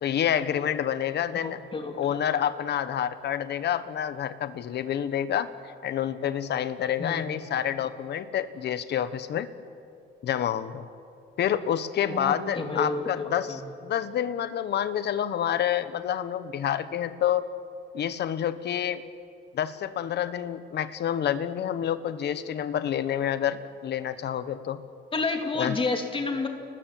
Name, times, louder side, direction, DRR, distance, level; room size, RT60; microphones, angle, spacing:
voice 1, 0.0-1.6 1.9-5.5 5.8-9.5 10.2-10.9 11.4-17.5 17.9-19.0 19.5-24.8 25.5-25.8, left 9 dB, 55° left, 13 dB, 1.2 m, -28 dB
voice 2, 1.3-2.2 7.0-7.4 12.1-13.6 25.1-26.5, left 3 dB, 25° left, 4 dB, 3.1 m, -30 dB
30.0 x 20.0 x 7.7 m, 2.4 s
cardioid pair, 120°, 21 cm